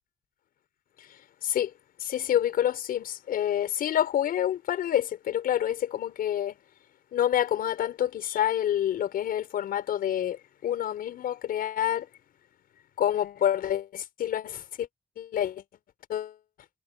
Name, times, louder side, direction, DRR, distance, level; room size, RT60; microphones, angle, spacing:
voice 1, 2.0-6.5 7.1-12.1 13.0-14.9 15.2-15.6 16.1-16.3, left 11 dB, 80° left, 6.0 m, -28 dB
cardioid pair, 65°, 15 cm